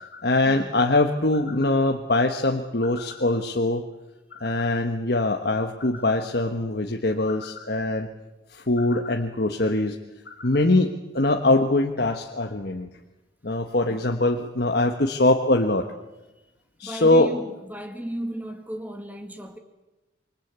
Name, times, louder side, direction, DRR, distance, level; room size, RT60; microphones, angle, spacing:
voice 1, 0.0-3.9 4.3-8.1 8.5-10.0 10.3-12.9 13.4-15.9 16.8-17.3, left 2 dB, 55° left, 1.3 m, -23 dB
voice 2, 16.8-19.6, equal, 10° right, 2.0 m, -35 dB
26.5 x 24.0 x 8.2 m
head